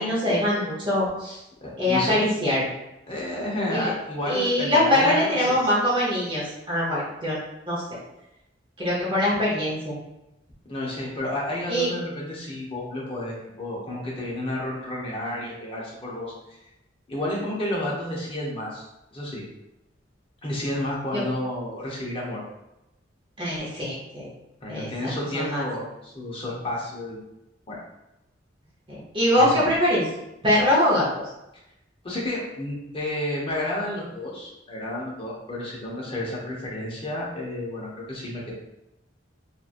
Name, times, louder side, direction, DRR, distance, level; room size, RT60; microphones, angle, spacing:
voice 1, 0.0-1.4 1.8-2.7 3.7-3.9 4.3-7.4 7.7-8.0 8.8-10.0 11.7-11.9 21.1-21.2 23.4-24.3 24.7-25.6 28.9-30.1 30.4-31.1, left 1 dB, 25° right, -7 dB, 0.8 m, -23 dB
voice 2, 1.6-2.1 3.1-5.6 10.7-16.3 17.1-19.4 20.4-22.4 24.6-27.2 27.7-27.8 29.4-29.5 32.0-38.5, left 1 dB, 30° left, -4 dB, 0.8 m, -31 dB
2.9 x 2.5 x 2.4 m, 0.90 s
head